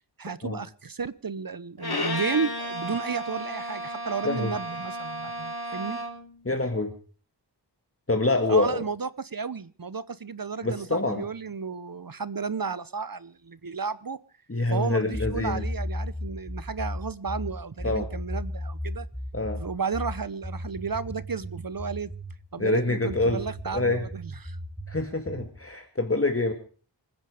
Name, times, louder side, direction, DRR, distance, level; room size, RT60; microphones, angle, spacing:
voice 1, 0.2-6.0 8.5-14.2 14.7-19.1 19.5-22.1 22.5-24.6, right 5 dB, 50° right, 17 dB, 0.9 m, -33 dB
Bowed string instrument, 1.8-6.3, equal, 55° left, 3.7 m, -33 dB
voice 2, 6.5-6.9 8.1-8.8 10.6-11.2 14.5-15.7 17.8-18.1 19.3-19.6 22.6-23.4 23.7-24.0 24.9-26.5, left 2 dB, 30° left, 5 dB, 2.0 m, -26 dB
sound 1, 15.1-22.4 23.1-25.6, equal, 5° right, 4.1 m, -35 dB
26.0 x 10.5 x 5.0 m, 0.41 s
wide cardioid pair, 55°, 44 cm